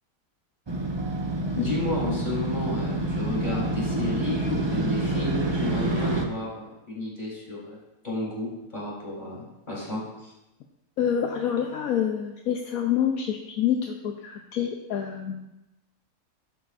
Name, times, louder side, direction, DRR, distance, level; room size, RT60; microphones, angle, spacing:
Motorcycle, 0.7-6.3, right 2 dB, 25° right, 0.7 m, -27 dB
voice 1, 1.5-10.3, left 2 dB, 30° left, -6 dB, 3.9 m, -32 dB
voice 2, 11.0-15.5, left 9 dB, 75° left, 2 dB, 1.2 m, -27 dB
12.0 x 8.9 x 2.6 m, 0.95 s
omnidirectional pair, 1.5 m